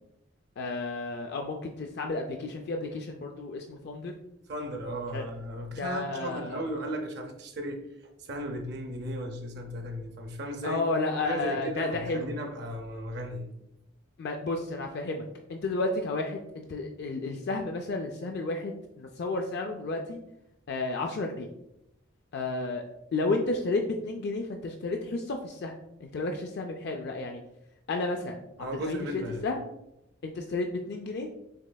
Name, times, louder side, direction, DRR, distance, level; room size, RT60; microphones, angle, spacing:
voice 1, 0.6-4.1 5.1-5.3 5.8-6.7 10.6-12.3 14.2-20.2 20.7-21.5 22.3-22.8 23.1-25.7 26.0-27.4 27.9-29.6 30.2-31.3, left 3 dB, 50° left, 0.4 m, -32 dB
voice 2, 4.5-7.9 8.2-10.8 11.2-13.5 28.6-29.5, equal, 50° right, 0.5 m, -35 dB
6.3 x 3.2 x 2.2 m
head